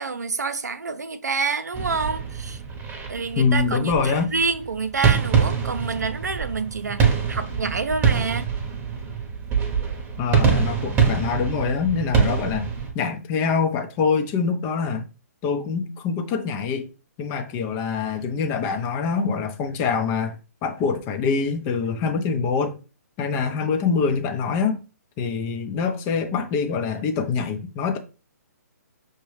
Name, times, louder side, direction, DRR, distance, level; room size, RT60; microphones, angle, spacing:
voice 1, 0.0-2.6 3.1-8.5, right 4 dB, 90° right, 0.5 m, -28 dB
sound 1, 1.7-12.9, right 6 dB, 20° right, 0.9 m, -24 dB
voice 2, 3.4-4.3 10.2-12.7 12.9-15.1 15.4-16.9 17.2-20.4 20.6-22.7 23.2-24.8 25.2-28.0, left 5 dB, 25° left, 0.6 m, -24 dB
5.9 x 2.2 x 3.2 m
hypercardioid pair, 135°, 9 cm